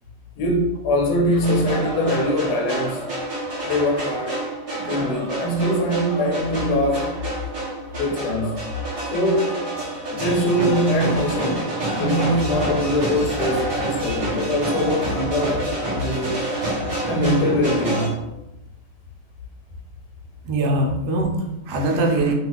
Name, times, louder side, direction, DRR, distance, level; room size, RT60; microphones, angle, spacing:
voice 1, 0.4-3.0 3.6-4.4 4.8-7.1 8.0-8.6 9.1-9.5 10.1-11.7 11.9-16.5 17.1-18.2, equal, 70° left, 0 dB, 1.1 m, -22 dB
sound 1, 1.3-18.1, right 1 dB, 35° right, 0.6 m, -28 dB
voice 2, 20.5-22.3, right 2 dB, 75° right, 1 dB, 1.1 m, -22 dB
2.8 x 2.4 x 3.2 m, 0.95 s
omnidirectional pair, 1.9 m